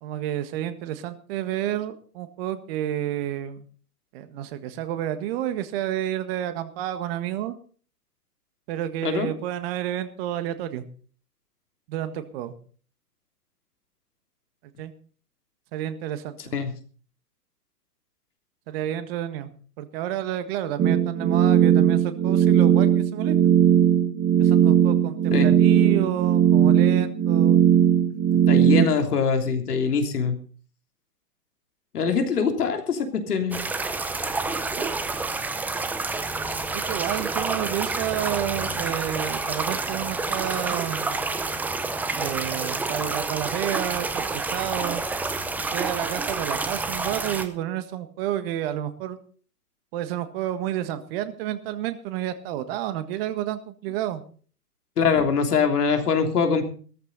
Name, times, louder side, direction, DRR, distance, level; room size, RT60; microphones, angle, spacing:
voice 1, 0.0-3.7 4.1-7.6 8.7-10.9 11.9-12.5 14.8-14.9 15.7-16.6 18.7-19.5 19.8-23.4 24.4-27.6 34.8-34.9 36.7-41.3 42.1-45.0 45.7-49.2 49.9-54.2, right 12 dB, 40° right, 11 dB, 1.7 m, -30 dB
sound 1, 20.8-28.9, right 9 dB, 20° right, 1.8 m, -18 dB
voice 2, 28.5-30.4 31.9-33.6 55.0-56.6, left 5 dB, 70° left, 5 dB, 3.3 m, -23 dB
sound 2, 33.5-47.5, right 3 dB, 5° right, 0.6 m, -28 dB
16.5 x 14.0 x 4.0 m, 0.43 s
hypercardioid pair, 125°, 47 cm